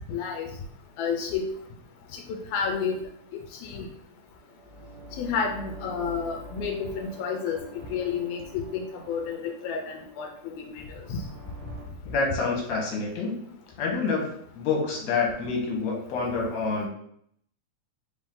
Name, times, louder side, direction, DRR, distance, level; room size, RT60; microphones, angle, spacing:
voice 1, 0.1-0.5 1.0-1.5 2.3-3.0 3.6-3.9 5.2-7.6 7.9-11.2, left 6 dB, 85° left, 2 dB, 2.0 m, -30 dB
sound 1, 4.4-11.9, right 2 dB, 80° right, 2.2 m, -46 dB
voice 2, 12.1-13.4 13.8-14.2 14.5-16.9, left 4 dB, 65° left, -1 dB, 2.1 m, -27 dB
4.8 x 2.6 x 3.6 m, 0.67 s
omnidirectional pair, 3.4 m